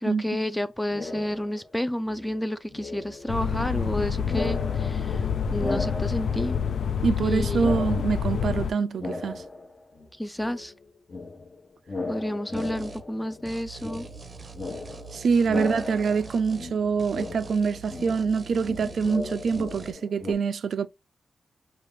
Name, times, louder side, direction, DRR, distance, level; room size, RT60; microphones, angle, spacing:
voice 1, 0.0-5.2 5.5-6.6 7.2-7.6 10.2-10.7 12.1-14.1 15.5-15.6, left 1 dB, 10° left, 0.4 m, -30 dB
sound 1, 0.9-1.8 2.0-4.0 4.2-7.3 7.6-10.1 10.4-20.3, left 3 dB, 35° left, 0.8 m, -37 dB
sound 2, 3.3-8.7, left 7 dB, 80° left, 0.4 m, -27 dB
voice 2, 7.0-9.4 15.1-20.9, right 5 dB, 75° right, 0.3 m, -25 dB
sound 3, 12.5-13.1 13.5-16.7 17.0-19.9, right 5 dB, 35° right, 0.6 m, -44 dB
6.5 x 2.3 x 3.2 m
wide cardioid pair, 110°, 0 cm